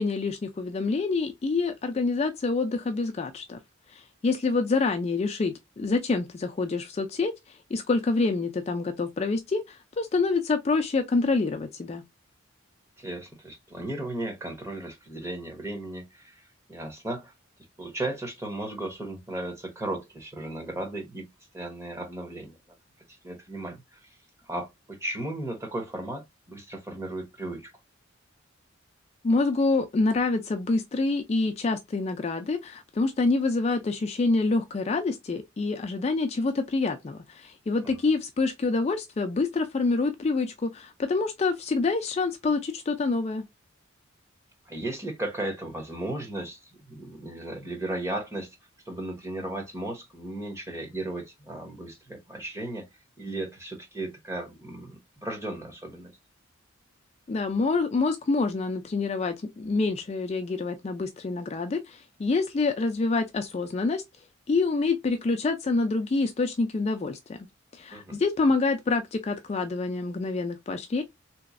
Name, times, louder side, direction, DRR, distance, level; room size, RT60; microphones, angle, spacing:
voice 1, 0.0-3.6 3.9-12.0 29.2-43.4 57.3-64.0 64.5-67.4 67.7-71.0, left 3 dB, 30° left, 0.3 m, -27 dB
voice 2, 13.0-17.3 17.8-21.3 21.5-22.6 23.1-24.1 24.5-27.7 37.8-38.0 44.7-48.5 48.9-52.9 53.2-56.1 67.9-68.2, right 1 dB, 15° right, 0.8 m, -35 dB
3.4 x 3.0 x 2.4 m
head